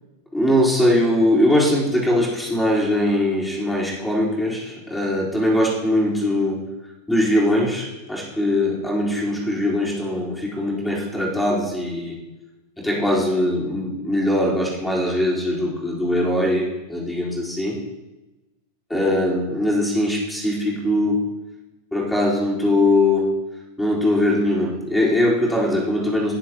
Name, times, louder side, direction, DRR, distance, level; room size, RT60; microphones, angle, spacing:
voice 1, 0.3-6.6 7.1-12.2 12.8-17.8 18.9-21.2 21.9-23.3 23.8-26.3, left 1 dB, 5° left, -5 dB, 3.7 m, -21 dB
19.0 x 7.5 x 2.9 m, 1.0 s
figure-of-eight pair, 90°, 0 cm